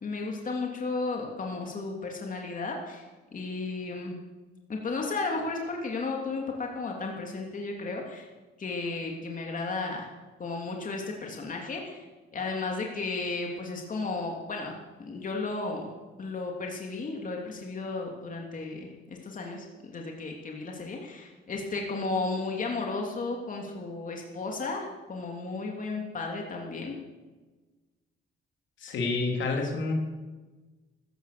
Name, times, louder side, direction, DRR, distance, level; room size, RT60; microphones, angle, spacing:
voice 1, 0.0-3.0 3.3-4.2 4.7-8.3 8.6-10.1 10.4-12.0 12.3-14.7 15.1-15.9 16.2-27.0, left 3 dB, 40° left, 0 dB, 3.1 m, -34 dB
voice 2, 28.8-29.9, left 3 dB, 70° left, 1 dB, 3.7 m, -28 dB
14.5 x 14.0 x 6.9 m, 1.2 s
cardioid pair, 90°, 20 cm